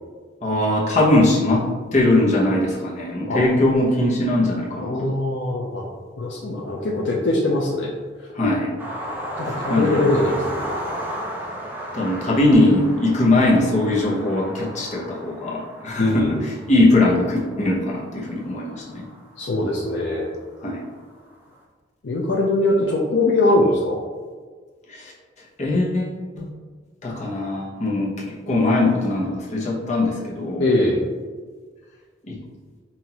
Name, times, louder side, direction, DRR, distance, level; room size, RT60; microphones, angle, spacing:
voice 1, 0.4-1.6 1.9-5.2 8.3-8.7 9.7-10.1 11.9-19.0 20.6-20.8 24.9-25.1 25.6-26.5 27.0-30.6 32.3-32.4, left 2 dB, 40° left, -4 dB, 0.9 m, -20 dB
voice 2, 4.8-5.8 6.2-7.9 9.4-10.6 16.0-16.4 19.4-20.3 22.0-24.0 30.6-31.0, left 2 dB, 70° left, -3 dB, 0.5 m, -22 dB
sound 1, 8.8-19.8 20.9-21.0 21.3-21.4, equal, 10° right, 0.6 m, -34 dB
5.7 x 2.6 x 2.9 m, 1.5 s
head